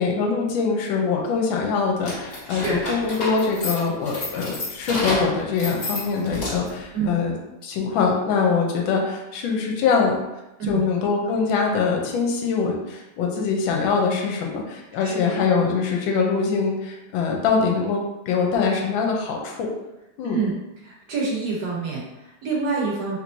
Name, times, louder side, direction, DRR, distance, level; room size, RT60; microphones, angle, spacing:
voice 1, 0.0-7.3 7.6-10.2 10.7-19.7 20.2-20.4, left 5 dB, 75° left, 0 dB, 1.3 m, -23 dB
sound 1, 2.0-6.8, left 2 dB, 40° left, 1.4 m, -30 dB
voice 2, 2.5-2.8 6.9-7.2 10.6-10.8 15.0-15.4 20.3-20.5 20.8-23.2, right 4 dB, 60° right, -4 dB, 1.3 m, -27 dB
3.5 x 3.0 x 2.5 m, 0.97 s
omnidirectional pair, 2.3 m